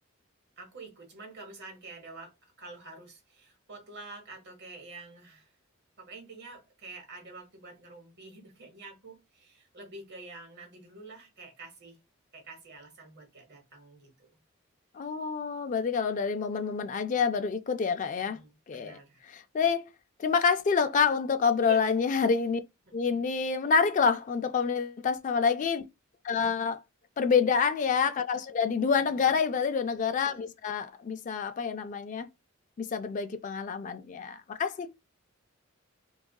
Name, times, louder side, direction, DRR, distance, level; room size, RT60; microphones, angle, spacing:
voice 1, 0.6-5.5 6.0-12.0 12.3-14.3 18.1-19.2 21.6-21.8 22.8-23.2 26.4-26.7 28.9-29.3, right 3 dB, 55° right, 1.1 m, -48 dB
voice 2, 14.9-18.4 18.7-19.0 19.3-19.9 20.2-22.6 22.9-25.8 26.2-26.8 27.2-32.3 32.8-34.9, left 5 dB, 40° left, 0.3 m, -27 dB
3.7 x 2.3 x 2.2 m
head